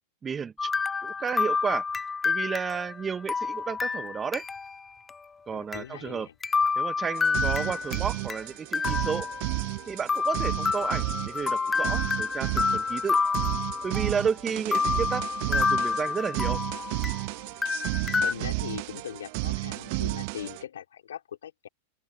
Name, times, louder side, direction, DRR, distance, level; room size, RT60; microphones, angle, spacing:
voice 1, 0.2-0.7 1.0-1.9 2.2-4.4 5.5-6.3 6.8-9.3 9.9-13.2 13.8-16.6, right 6 dB, 20° right, 1.2 m, -32 dB
sound 1, 0.6-4.8 5.1-5.2 5.7-5.8 6.4-8.4 8.7-9.8 10.1-14.3 14.7-17.3 17.6-18.3, left 5 dB, 15° left, 0.4 m, -28 dB
voice 2, 5.5-6.4 18.2-21.7, left 10 dB, 80° left, 3.0 m, -40 dB
sound 2, 7.2-20.6, right 24 dB, 55° right, 1.5 m, -32 dB
open air
hypercardioid pair, 105°, 0 cm